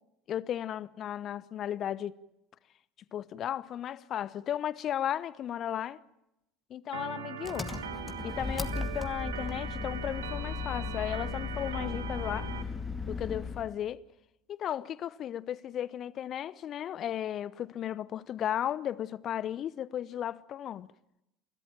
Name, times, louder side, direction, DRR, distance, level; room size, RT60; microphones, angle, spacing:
voice 1, 0.3-2.2 3.1-6.0 6.7-7.7 8.2-12.5 13.1-14.0 14.5-20.9, left 10 dB, 40° left, 0.8 m, -35 dB
Organ, 6.9-12.6, right 8 dB, 75° right, 1.7 m, -41 dB
Engine, 7.4-13.7, left 4 dB, 15° left, 2.1 m, -36 dB
29.5 x 13.0 x 9.1 m
figure-of-eight pair, 70°, 0 cm